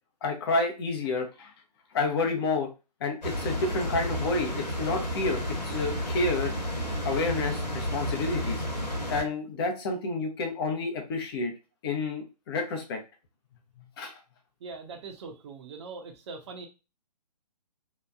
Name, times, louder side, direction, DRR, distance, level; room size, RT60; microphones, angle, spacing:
voice 1, 0.2-1.5 1.9-2.7 3.0-6.5 7.0-8.6 9.1-11.5 11.8-13.0 14.0-14.1, left 3 dB, 35° left, 3 dB, 0.8 m, -29 dB
sound 1, 3.2-9.2, equal, 85° left, 1.2 m, -31 dB
voice 2, 14.6-16.7, right 4 dB, 40° right, 4 dB, 0.7 m, -41 dB
2.9 x 2.4 x 2.3 m, 0.29 s
figure-of-eight pair, 130°, 21 cm